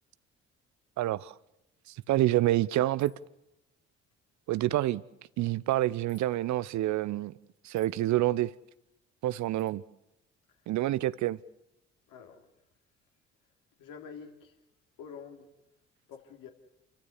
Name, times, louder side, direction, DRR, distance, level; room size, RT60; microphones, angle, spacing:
voice 1, 1.0-1.3 2.1-3.1 4.5-5.0 5.4-7.3 7.6-8.5 9.2-9.8 10.7-11.4, right 15 dB, 50° right, 0.7 m, -27 dB
sound 1, 3.0-3.3 6.1-6.3 7.8-8.0 9.6-9.8, left 6 dB, 45° left, 3.8 m, -61 dB
voice 2, 12.1-12.5 13.8-14.5 15.0-15.5 16.1-16.5, left 6 dB, 60° left, 3.2 m, -47 dB
29.0 x 14.5 x 8.1 m
figure-of-eight pair, 50°, 36 cm